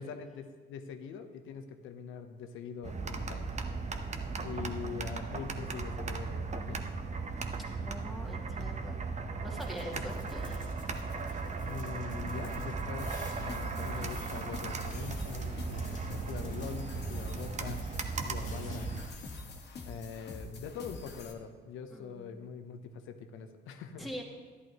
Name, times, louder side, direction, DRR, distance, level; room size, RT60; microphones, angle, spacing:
voice 1, 0.0-3.5 4.4-6.9 9.9-10.1 11.6-13.1 13.4-19.0 19.9-24.1, left 6 dB, 90° left, 7 dB, 0.9 m, -43 dB
sound 1, 2.8-19.1, right 4 dB, 35° right, 0.9 m, -37 dB
voice 2, 7.8-9.0 9.4-10.6 21.9-22.6 24.0-24.2, equal, ahead, -2 dB, 2.1 m, -44 dB
sound 2, 9.5-19.4, left 3 dB, 40° left, 1.9 m, -56 dB
sound 3, 13.0-21.3, left 3 dB, 60° left, 1.6 m, -46 dB
12.5 x 11.0 x 3.0 m, 1.4 s
cardioid pair, 90°, 20 cm